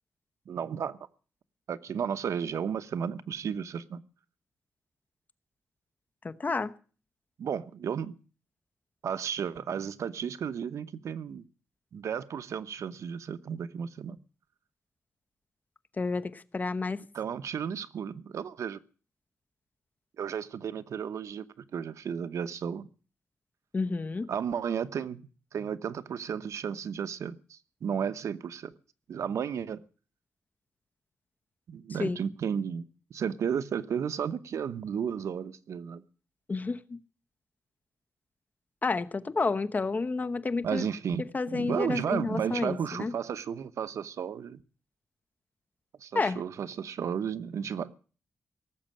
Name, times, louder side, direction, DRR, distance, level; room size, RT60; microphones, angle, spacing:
voice 1, 0.5-1.0 1.7-4.0 7.4-8.1 9.0-11.4 11.9-14.2 17.1-18.8 20.2-21.5 21.7-22.9 24.3-25.2 25.5-28.7 29.1-29.8 31.7-36.0 40.6-44.6 46.0-47.9, right 7 dB, 80° right, 13 dB, 0.9 m, -33 dB
voice 2, 6.2-6.7 16.0-17.0 23.7-24.3 32.0-32.2 36.5-37.0 38.8-40.8 41.3-43.1 46.1-46.4, left 3 dB, 35° left, 11 dB, 0.9 m, -30 dB
18.0 x 7.4 x 9.0 m, 0.40 s
wide cardioid pair, 110°, 5 cm